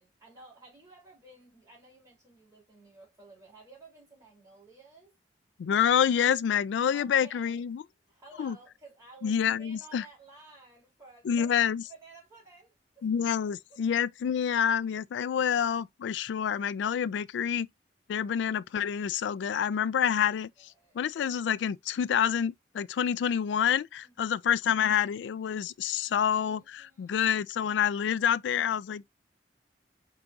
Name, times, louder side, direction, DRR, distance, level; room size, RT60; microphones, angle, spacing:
voice 1, 0.0-5.1 6.9-7.6 8.1-13.1 13.7-14.1 20.6-21.0 24.0-24.4 26.0-27.4, right 2 dB, 15° right, 3.2 m, -54 dB
voice 2, 5.6-7.8 8.4-8.6 9.2-10.0 11.3-11.8 13.0-17.7 18.1-29.2, left 8 dB, 80° left, 0.3 m, -28 dB
4.6 x 4.0 x 2.4 m
head